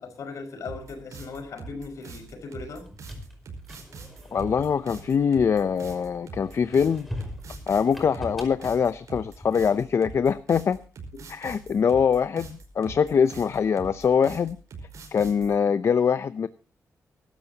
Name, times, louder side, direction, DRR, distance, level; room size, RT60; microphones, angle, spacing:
voice 1, 0.0-2.9, left 4 dB, 75° left, 5 dB, 5.5 m, -38 dB
sound 1, 0.6-15.5, right 4 dB, 80° right, 4.9 m, -43 dB
sound 2, 2.7-5.9 6.4-9.8, left 1 dB, ahead, 5.0 m, -42 dB
voice 2, 4.3-7.1 7.7-10.8 11.3-14.6 15.1-16.5, left 6 dB, 55° left, 12 dB, 0.7 m, -23 dB
22.5 x 12.5 x 2.9 m, 0.35 s
cardioid pair, 105°, 5 cm